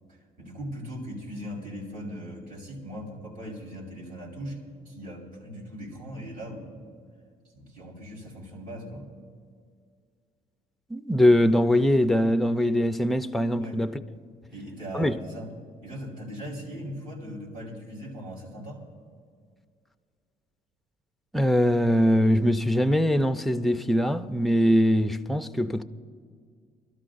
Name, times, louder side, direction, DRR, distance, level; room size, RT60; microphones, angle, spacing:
voice 1, 0.4-4.6 4.8-6.9 7.5-9.1 13.6-13.8 14.5-15.5 15.8-18.9, equal, 55° right, 4.1 m, -39 dB
voice 2, 10.9-14.0 14.9-15.2 21.3-25.8, equal, ahead, 0.5 m, -22 dB
26.5 x 13.0 x 2.6 m
cardioid pair, 110°, 17 cm